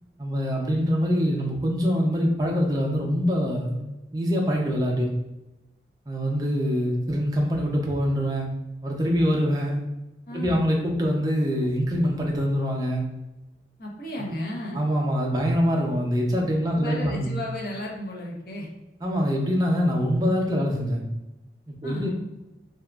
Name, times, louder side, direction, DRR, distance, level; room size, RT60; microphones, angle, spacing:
voice 1, 0.2-3.8 4.1-5.1 6.1-8.5 8.8-9.8 10.3-13.0 14.7-17.3 19.0-21.0 21.7-22.1, equal, 20° right, -1 dB, 0.4 m, -24 dB
voice 2, 10.3-10.7 13.8-14.8 16.6-18.7 21.8-22.1, left 1 dB, 55° left, -2 dB, 0.6 m, -34 dB
2.8 x 2.3 x 2.2 m, 0.98 s
head